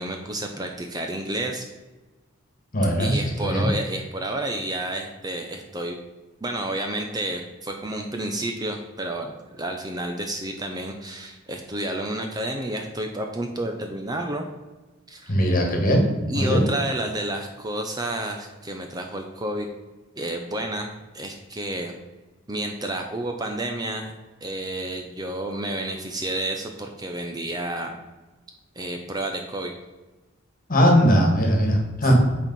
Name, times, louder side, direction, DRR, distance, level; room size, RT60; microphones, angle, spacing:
voice 1, 0.0-1.7 3.0-6.0 6.4-14.4 15.1-15.3 16.3-19.7 20.2-22.0 22.5-24.1 24.4-27.9 28.8-29.7, right 1 dB, 15° right, 3 dB, 0.6 m, -30 dB
voice 2, 2.7-3.7 15.3-16.0 16.3-16.6 30.7-32.1, equal, 40° left, 2 dB, 1.6 m, -19 dB
8.6 x 4.4 x 5.4 m, 1.2 s
head